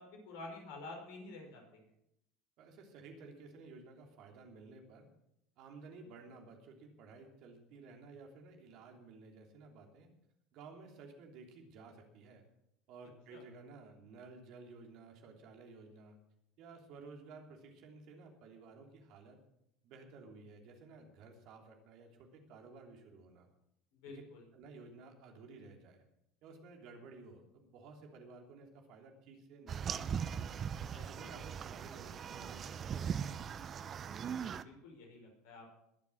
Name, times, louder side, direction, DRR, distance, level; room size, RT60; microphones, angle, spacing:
voice 1, 0.0-1.8 13.3-13.4 23.9-24.4 30.9-31.2 34.2-35.7, left 2 dB, 70° left, 1 dB, 5.1 m, -50 dB
voice 2, 2.6-5.1 5.6-10.1 10.5-12.5 12.9-16.2 16.6-19.4 19.8-23.5 24.1-24.2 24.5-26.0 26.4-30.6 31.0-33.7, right 3 dB, 60° right, 3 dB, 3.2 m, -54 dB
sound 1, 29.7-34.6, right 7 dB, 40° right, 0.8 m, -40 dB
21.0 x 7.4 x 6.4 m, 0.81 s
hypercardioid pair, 75°, 0 cm